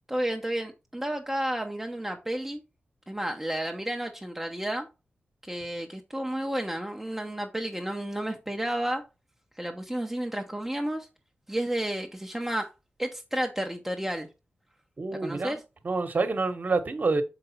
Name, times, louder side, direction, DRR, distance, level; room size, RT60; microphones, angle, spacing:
voice 1, 0.1-2.6 3.1-4.9 5.4-9.0 9.6-11.1 11.5-12.7 13.0-14.3 15.2-15.6, right 1 dB, 10° right, 0.8 m, -31 dB
voice 2, 15.0-15.6 15.8-17.2, right 3 dB, 45° right, 1.2 m, -27 dB
6.6 x 4.9 x 4.3 m
wide cardioid pair, 100°, 4 cm